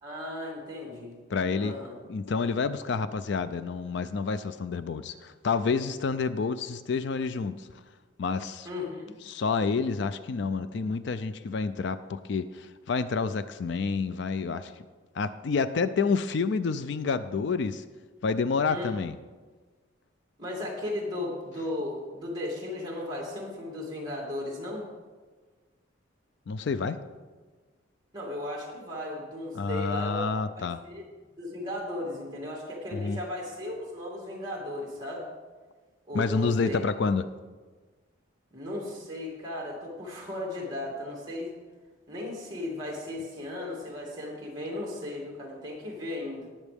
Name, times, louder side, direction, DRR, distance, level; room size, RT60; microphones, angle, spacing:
voice 1, 0.0-1.2 1.6-1.9 8.6-9.2 18.7-18.9 20.4-24.9 28.1-30.2 30.6-31.1 31.4-35.3 36.1-36.8 38.5-41.5 42.1-46.5, left 1 dB, 20° right, -2 dB, 2.6 m, -36 dB
voice 2, 1.3-1.7 2.1-7.7 8.2-8.7 9.3-14.7 15.1-17.8 18.2-19.2 26.5-27.0 29.5-30.8 32.9-33.2 36.1-37.2, left 4 dB, 60° left, 13 dB, 0.4 m, -29 dB
19.0 x 7.2 x 3.5 m, 1.4 s
head